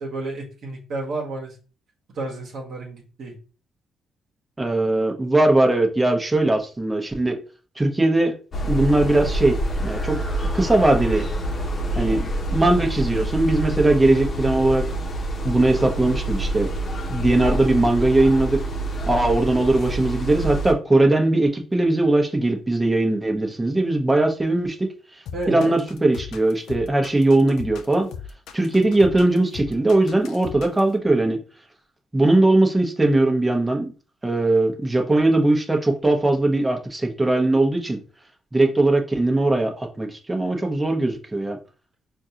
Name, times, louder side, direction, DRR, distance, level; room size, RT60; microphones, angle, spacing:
voice 1, 0.0-1.5 2.1-3.3 25.3-25.8, right 2 dB, 70° right, 1.0 m, -31 dB
voice 2, 4.6-7.4 7.8-8.3 8.6-9.6 9.8-10.2 10.5-11.3 12.0-14.9 15.4-16.7 17.1-18.6 19.1-24.9 25.5-28.1 28.5-31.4 32.1-33.9 34.2-38.0 38.5-41.6, right 2 dB, 20° right, 0.8 m, -20 dB
sound 1, 8.5-20.7, right 1 dB, 50° left, 0.9 m, -27 dB
sound 2, 9.6-21.1, left 2 dB, 10° left, 1.0 m, -43 dB
sound 3, 25.3-30.9, left 7 dB, 80° left, 0.3 m, -38 dB
4.5 x 2.5 x 2.8 m
supercardioid pair, 55°, 0 cm